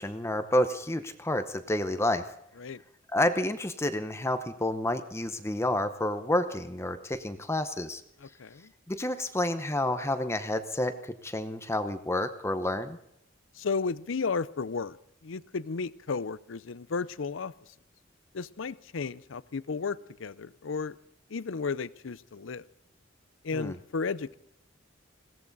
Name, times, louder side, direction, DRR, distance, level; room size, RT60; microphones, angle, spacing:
voice 1, 0.0-2.3 3.1-8.0 8.9-13.0 23.5-23.7, left 1 dB, 15° left, 9 dB, 0.8 m, -29 dB
voice 2, 8.2-8.7 13.5-15.0 15.2-17.5 18.3-21.0 21.3-22.7 23.4-24.4, left 4 dB, 75° left, 18 dB, 0.6 m, -33 dB
21.0 x 17.0 x 4.0 m, 0.74 s
head